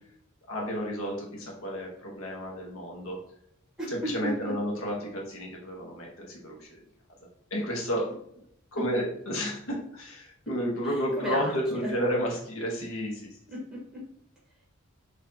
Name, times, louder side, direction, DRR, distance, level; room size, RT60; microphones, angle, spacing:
voice 1, 0.5-3.2 3.9-6.8 7.5-8.1 8.7-13.3, equal, 70° left, -1 dB, 1.0 m, -31 dB
voice 2, 3.8-4.5 8.8-9.0 10.8-11.5 11.8-11.9 13.5-14.0, right 1 dB, 5° right, -4 dB, 1.2 m, -34 dB
4.1 x 2.6 x 2.7 m, 0.71 s
head